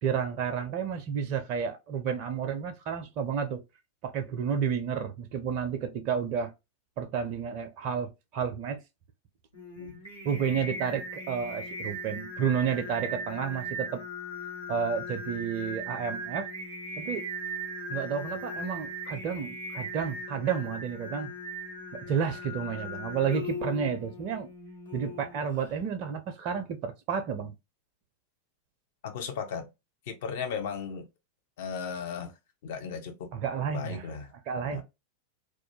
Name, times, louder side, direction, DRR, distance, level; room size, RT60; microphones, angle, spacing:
voice 1, 0.0-3.6 4.0-6.5 7.0-8.8 10.2-14.0 14.7-16.5 17.0-17.3 17.9-21.3 21.9-24.5 24.9-27.5 33.3-34.0 34.5-34.8, right 7 dB, 40° right, 0.4 m, -31 dB
Singing, 9.5-25.8, equal, 80° left, 1.3 m, -39 dB
voice 2, 29.0-29.7 30.1-31.1 31.6-32.3 32.6-33.3 33.7-34.3 34.7-34.8, left 6 dB, 55° left, 0.6 m, -36 dB
2.3 x 2.1 x 2.9 m
figure-of-eight pair, 90°, 0 cm